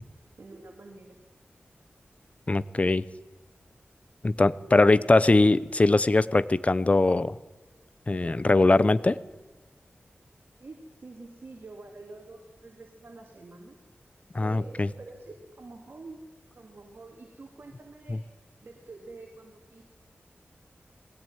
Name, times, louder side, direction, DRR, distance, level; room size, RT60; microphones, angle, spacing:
voice 1, 0.4-1.2 10.6-13.8 14.4-16.2 16.5-18.2 18.6-19.8, right 3 dB, 60° right, 1 dB, 3.1 m, -47 dB
voice 2, 2.5-3.0 4.2-7.4 8.1-9.2 14.3-14.9 18.1-18.2, left 2 dB, 30° left, 16 dB, 0.7 m, -21 dB
21.0 x 17.0 x 9.2 m, 1.2 s
wide cardioid pair, 95°, 4 cm